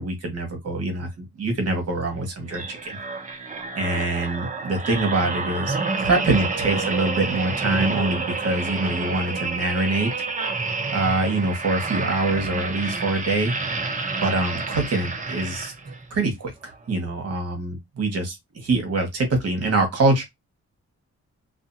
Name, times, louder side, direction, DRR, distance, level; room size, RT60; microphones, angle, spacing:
voice 1, 0.0-3.0 3.8-10.1 10.9-13.5 14.2-15.7 16.1-16.5 16.9-20.2, right 2 dB, 55° right, 1.1 m, -24 dB
sound 1, 2.5-16.1 16.6-16.8, right 3 dB, 25° right, 0.5 m, -29 dB
2.5 x 2.4 x 2.6 m
wide cardioid pair, 110°, 30 cm